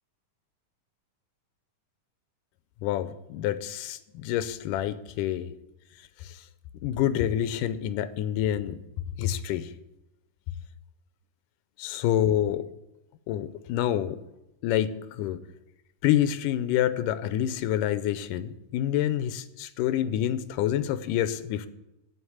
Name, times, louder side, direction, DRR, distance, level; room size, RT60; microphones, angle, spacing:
voice 1, 2.8-5.5 6.2-6.4 6.8-8.8 9.2-9.7 11.8-12.7 13.3-14.2 14.6-15.4 16.0-21.7, left 11 dB, 90° left, 13 dB, 2.2 m, -27 dB
8.1 x 8.0 x 8.6 m, 0.92 s
omnidirectional pair, 3.7 m